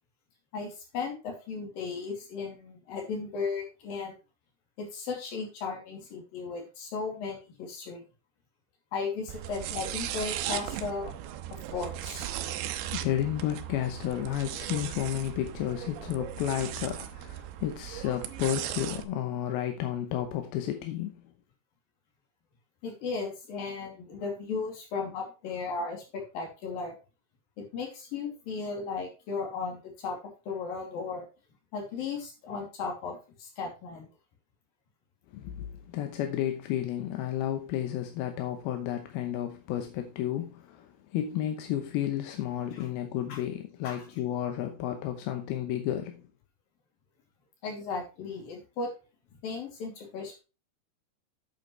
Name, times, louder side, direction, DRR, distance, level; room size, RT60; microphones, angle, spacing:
voice 1, 0.5-4.2 4.8-8.0 8.9-11.1 11.7-12.3 22.8-27.0 27.7-30.2 30.5-31.3 31.7-34.1 43.3-43.4 43.8-44.0 47.6-48.9 49.4-50.4, left 4 dB, 55° left, 4.3 m, -35 dB
sound 1, 9.3-19.0, right 12 dB, 90° right, 3.0 m, -37 dB
voice 2, 12.9-21.2 35.3-46.2, left 11 dB, 75° left, 2.5 m, -32 dB
9.2 x 8.0 x 3.2 m
omnidirectional pair, 5.2 m